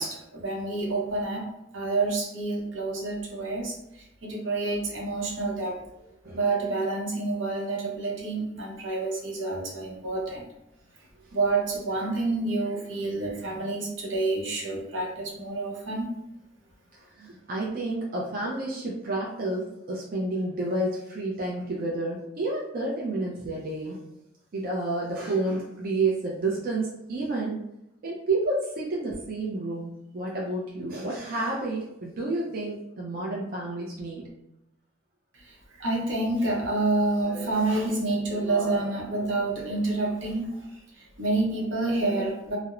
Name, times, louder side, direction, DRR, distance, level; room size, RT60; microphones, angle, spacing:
voice 1, 0.0-1.5 1.7-5.8 6.3-10.5 11.3-16.1 35.3-40.5 41.0-42.6, right 2 dB, 85° right, -2 dB, 0.7 m, -28 dB
voice 2, 6.2-6.6 16.9-24.0 24.5-27.6 28.0-34.2, right 2 dB, 50° right, -3 dB, 0.4 m, -30 dB
2.4 x 2.0 x 2.9 m, 0.87 s
head